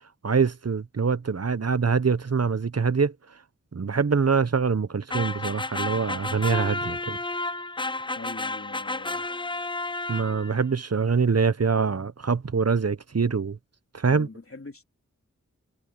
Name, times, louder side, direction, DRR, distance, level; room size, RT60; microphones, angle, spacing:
voice 1, 0.2-3.1 3.7-7.2 10.1-13.6 13.9-14.3, right 5 dB, 55° right, 0.9 m, -24 dB
sound 1, 5.1-10.6, left 2 dB, 15° left, 0.5 m, -31 dB
voice 2, 8.1-9.3 14.1-14.8, left 3 dB, 50° left, 2.9 m, -42 dB
wide cardioid pair, 40°, 30 cm